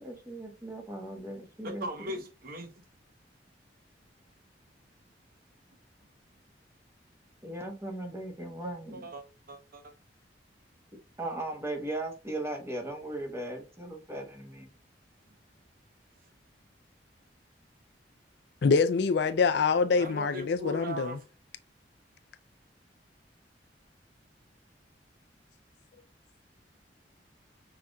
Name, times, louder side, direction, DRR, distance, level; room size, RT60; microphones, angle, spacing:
voice 1, 0.0-2.1 7.4-9.0 11.2-14.7, right 1 dB, 15° right, 1.0 m, -38 dB
voice 2, 1.6-2.7 8.6-9.9 20.0-21.2, equal, 55° right, 1.0 m, -39 dB
voice 3, 18.6-21.2, left 5 dB, 65° left, 0.4 m, -25 dB
5.8 x 3.8 x 2.3 m
head